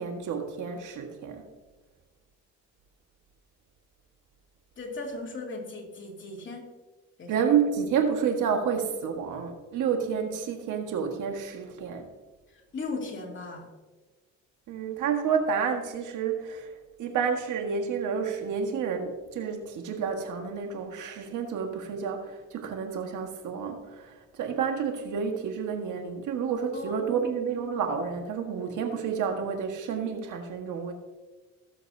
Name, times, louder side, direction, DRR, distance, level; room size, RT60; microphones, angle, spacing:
voice 1, 0.0-1.4 7.3-12.1 14.7-16.7 17.0-30.9, right 6 dB, 80° right, 4 dB, 1.6 m, -30 dB
voice 2, 4.8-6.7 7.2-7.5 12.7-13.7 26.7-27.6, left 3 dB, 40° left, 0 dB, 2.7 m, -37 dB
18.0 x 7.4 x 2.8 m, 1.2 s
cardioid pair, 90°, 30 cm